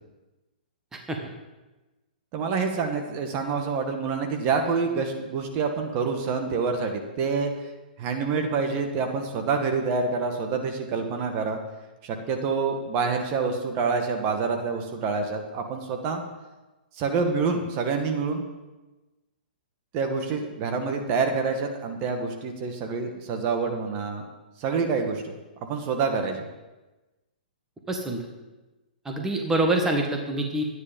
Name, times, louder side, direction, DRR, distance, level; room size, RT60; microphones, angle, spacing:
voice 1, 2.3-7.5 8.0-11.6 12.0-16.2 16.9-18.4 19.9-24.2 24.6-25.3 25.6-26.4, right 4 dB, 35° right, 5 dB, 1.5 m, -27 dB
voice 2, 27.9-28.2 29.0-30.6, right 1 dB, 10° right, 2 dB, 1.4 m, -26 dB
12.0 x 9.8 x 5.3 m, 1.1 s
hypercardioid pair, 140°, 5 cm